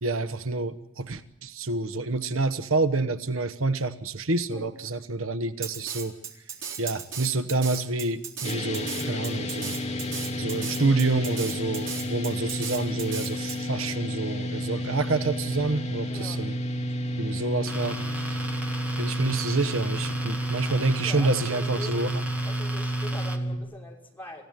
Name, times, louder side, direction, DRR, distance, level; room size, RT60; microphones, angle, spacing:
voice 1, 0.0-6.1 6.8-9.7 10.4-16.5 17.2-18.0 18.3-18.4 19.0-22.1, right 3 dB, 75° right, 9 dB, 1.2 m, -28 dB
Drum kit, 5.6-13.6, right 7 dB, 55° right, 5.0 m, -36 dB
sound 1, 8.4-23.6, equal, 30° left, 2.7 m, -31 dB
voice 2, 16.1-16.5 20.6-22.1 22.4-24.5, left 1 dB, 10° left, -3 dB, 5.7 m, -43 dB
sound 2, 17.7-23.4, right 1 dB, 5° right, 2.1 m, -38 dB
28.0 x 16.0 x 9.2 m, 0.89 s
head